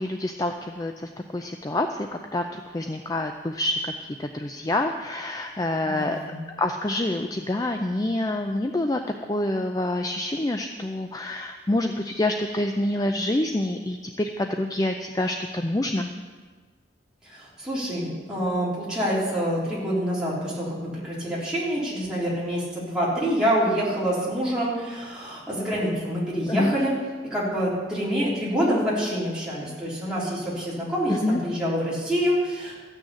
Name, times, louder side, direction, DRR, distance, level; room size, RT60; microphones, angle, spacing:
voice 1, 0.0-3.8 4.2-6.2 6.6-9.0 9.3-16.1 26.5-26.7 31.2-31.4, left 1 dB, 20° left, 5 dB, 0.4 m, -27 dB
voice 2, 5.8-6.4 17.2-27.0 27.3-32.8, equal, 5° right, -8 dB, 3.7 m, -26 dB
14.0 x 6.3 x 8.5 m, 1.4 s
head